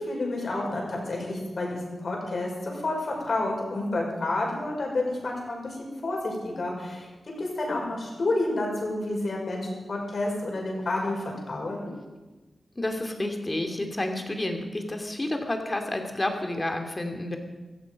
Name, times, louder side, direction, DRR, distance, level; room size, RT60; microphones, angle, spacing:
voice 1, 0.0-7.1 7.4-11.9, left 2 dB, 60° left, -1 dB, 5.4 m, -30 dB
voice 2, 12.8-17.4, left 1 dB, 25° left, 4 dB, 2.6 m, -30 dB
16.0 x 14.5 x 5.3 m, 1.2 s
cardioid pair, 65°, 0 cm